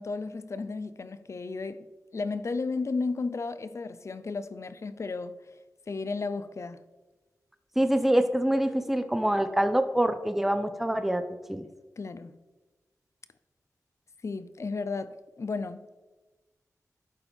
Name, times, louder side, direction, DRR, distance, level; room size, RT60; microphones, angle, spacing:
voice 1, 0.0-1.9 2.1-5.4 5.9-6.8 12.0-12.4 14.2-15.9, left 4 dB, 50° left, 0.5 m, -33 dB
voice 2, 7.8-11.2 11.5-11.6, right 1 dB, 5° right, 0.6 m, -25 dB
11.5 x 4.5 x 3.5 m
cardioid pair, 55°, 6 cm